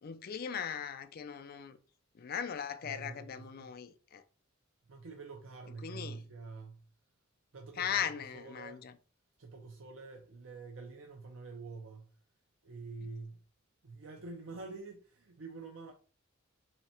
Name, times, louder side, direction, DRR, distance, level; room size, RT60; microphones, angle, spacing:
voice 1, 0.0-1.8 2.2-4.2 5.8-6.2 7.8-8.9, left 8 dB, 45° left, 0.4 m, -38 dB
voice 2, 2.8-3.7 4.9-6.8 7.5-8.9 9.4-12.2 12.6-13.4 13.8-15.9, right 3 dB, 65° right, 0.6 m, -47 dB
3.2 x 2.8 x 4.2 m
head